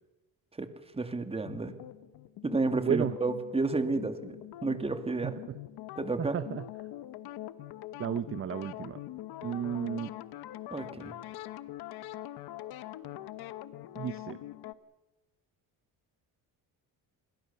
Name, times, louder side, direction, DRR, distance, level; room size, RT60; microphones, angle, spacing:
voice 1, 0.9-1.7 2.4-5.4 6.0-6.4 10.7-11.1, right 3 dB, 15° right, 9 dB, 2.1 m, -31 dB
sound 1, 1.4-14.7, left 14 dB, 70° left, 1.2 m, -43 dB
voice 2, 2.7-3.1 5.2-5.3 6.2-6.6 8.0-9.0 9.4-10.1 14.0-14.4, right 9 dB, 35° right, 14 dB, 0.7 m, -32 dB
28.5 x 21.0 x 6.9 m, 1.1 s
cardioid pair, 130°, 39 cm